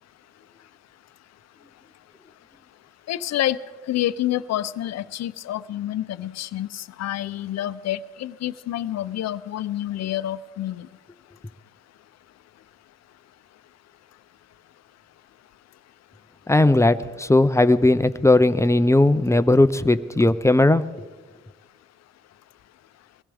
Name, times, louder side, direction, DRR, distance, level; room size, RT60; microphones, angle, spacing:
voice 1, 3.1-3.6 3.9-10.9, left 13 dB, 60° left, 13 dB, 0.6 m, -28 dB
voice 2, 16.5-20.8, left 2 dB, 10° left, 12 dB, 0.6 m, -17 dB
23.0 x 16.5 x 3.5 m, 1.4 s
cardioid pair, 90°, 30 cm